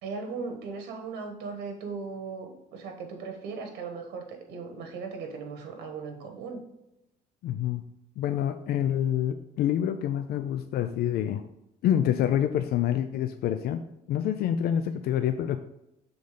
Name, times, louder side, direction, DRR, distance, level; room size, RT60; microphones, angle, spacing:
voice 1, 0.0-6.6, right 4 dB, 85° right, 4 dB, 1.3 m, -38 dB
voice 2, 7.4-7.8 8.2-11.4 11.8-13.8 14.1-15.6, left 10 dB, 70° left, 8 dB, 0.5 m, -27 dB
7.0 x 3.9 x 5.0 m, 0.86 s
cardioid pair, 110°, 17 cm